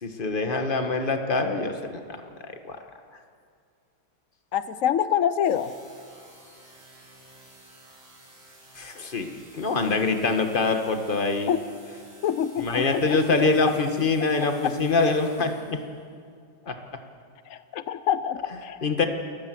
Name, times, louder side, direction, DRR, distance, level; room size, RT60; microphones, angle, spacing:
voice 1, 0.0-2.8 8.7-11.5 12.6-15.8 16.7-16.8 18.8-19.1, left 3 dB, 30° left, 6 dB, 1.5 m, -25 dB
voice 2, 4.5-5.7 11.5-11.6 12.2-13.2 17.5-18.8, left 9 dB, 90° left, 13 dB, 0.7 m, -26 dB
sound 1, 5.4-16.0, right 1 dB, 70° right, 8.0 m, -52 dB
29.0 x 15.0 x 7.7 m, 2.2 s
omnidirectional pair, 2.2 m